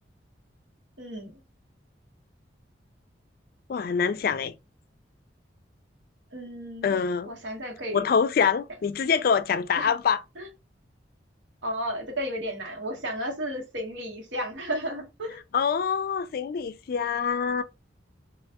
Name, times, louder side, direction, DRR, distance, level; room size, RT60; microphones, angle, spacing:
voice 1, 1.0-1.4 6.3-7.0 7.3-8.0 9.7-9.9 10.4-10.5 11.6-15.4, equal, 80° right, 1.2 m, -33 dB
voice 2, 3.7-4.5 6.8-7.3 7.9-10.2 15.5-17.6, left 6 dB, 50° left, 0.3 m, -25 dB
3.1 x 2.4 x 2.8 m
head